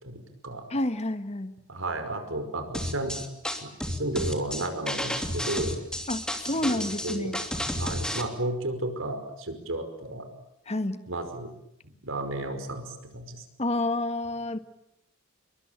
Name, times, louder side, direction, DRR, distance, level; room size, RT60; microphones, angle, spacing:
voice 1, 0.0-0.6 1.7-3.2 3.6-5.8 6.7-7.4 7.7-10.3 11.1-11.5 12.0-13.4, right 2 dB, 70° right, 8 dB, 5.3 m, -33 dB
voice 2, 0.7-1.5 6.1-7.4 10.7-11.0 13.6-14.6, left 1 dB, 30° left, 11 dB, 1.5 m, -29 dB
sound 1, 2.7-8.2, left 1 dB, 5° left, 3.2 m, -31 dB
29.0 x 23.0 x 8.9 m, 0.82 s
head